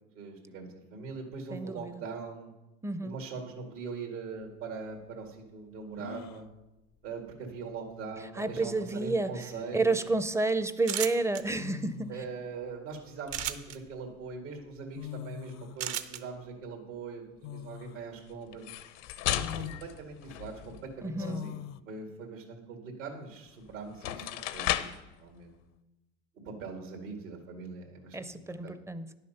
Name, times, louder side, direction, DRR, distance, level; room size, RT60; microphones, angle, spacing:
voice 1, 0.1-2.5 3.0-6.5 7.0-10.0 12.1-17.2 17.5-18.7 19.3-24.9 25.2-25.6 26.5-28.8, right 4 dB, 90° right, 1 dB, 2.2 m, -42 dB
voice 2, 1.5-2.0 2.8-3.2 8.4-9.3 9.7-12.1 21.0-21.5 28.1-29.1, right 3 dB, 10° right, 12 dB, 0.4 m, -30 dB
sound 1, 4.4-4.5 6.0-6.5 8.0-8.1 8.5-8.9 10.3-10.5 11.6-12.3 13.0-14.0 14.7-14.8 14.9-15.8 17.4-18.0 18.5-18.6 19.4-19.9 21.2-21.8, left 10 dB, 45° left, 0.4 m, -43 dB
sound 2, 10.8-11.4 13.3-13.8 15.8-16.2, right 12 dB, 65° right, 0.9 m, -33 dB
sound 3, 18.5-20.9 23.4-23.5 23.9-25.1, left 12 dB, 75° left, 0.7 m, -34 dB
10.5 x 6.6 x 5.7 m, 1.0 s
hypercardioid pair, 95°, 37 cm